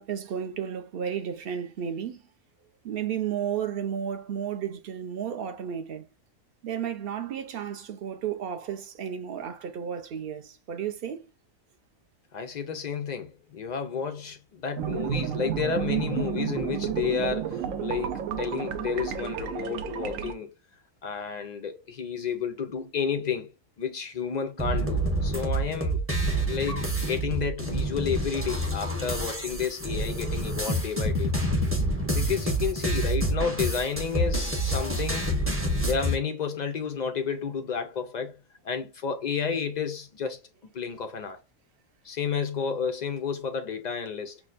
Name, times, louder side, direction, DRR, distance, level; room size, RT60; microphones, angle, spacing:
voice 1, 0.0-2.2 2.8-6.1 6.6-11.3, right 8 dB, 55° right, 0.7 m, -33 dB
voice 2, 12.3-20.5 21.0-23.5 23.8-26.1 26.5-31.3 32.1-35.3 35.9-38.4 38.6-40.4 40.7-41.4 42.0-44.4, left 6 dB, 75° left, 0.4 m, -31 dB
sound 1, 14.8-20.3, right 9 dB, 75° right, 1.0 m, -31 dB
sound 2, 24.6-36.1, right 1 dB, 10° right, 0.7 m, -28 dB
6.0 x 2.1 x 2.5 m
omnidirectional pair, 1.4 m